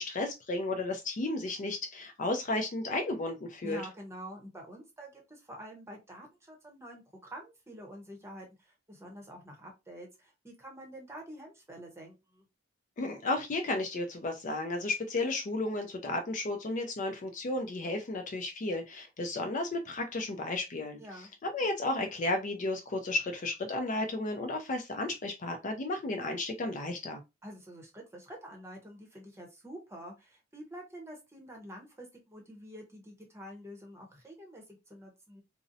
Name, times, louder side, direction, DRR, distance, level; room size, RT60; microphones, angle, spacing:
voice 1, 0.0-3.8 13.0-21.0 21.4-27.2, left 2 dB, 40° left, 0.4 m, -33 dB
voice 2, 3.6-12.4 21.0-21.3 27.4-35.4, equal, 15° right, 0.7 m, -47 dB
2.6 x 2.0 x 2.5 m
head